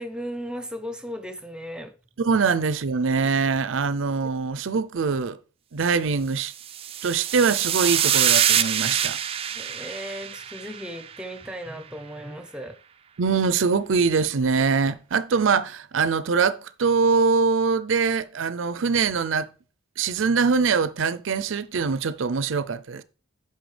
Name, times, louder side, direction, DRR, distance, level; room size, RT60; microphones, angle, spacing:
voice 1, 0.0-1.9 9.5-12.8, equal, 5° right, 0.8 m, -36 dB
voice 2, 2.2-5.4 5.7-6.5 7.0-9.2 13.2-19.5 20.0-23.0, right 5 dB, 90° right, 0.5 m, -23 dB
sound 1, 6.6-11.1, right 10 dB, 30° right, 0.4 m, -25 dB
10.0 x 5.6 x 3.3 m
head